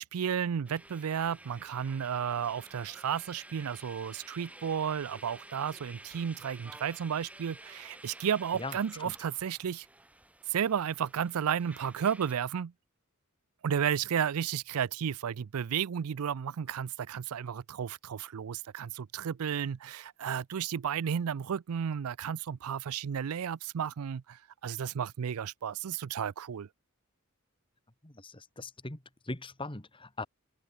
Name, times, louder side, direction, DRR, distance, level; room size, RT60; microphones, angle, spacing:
voice 1, 0.0-9.9 10.5-12.7 13.6-26.7, right 8 dB, 85° right, 0.4 m, -33 dB
sound 1, 0.7-12.3, right 1 dB, 5° right, 1.6 m, -52 dB
voice 2, 8.5-9.1 28.0-30.3, left 2 dB, 25° left, 2.2 m, -41 dB
head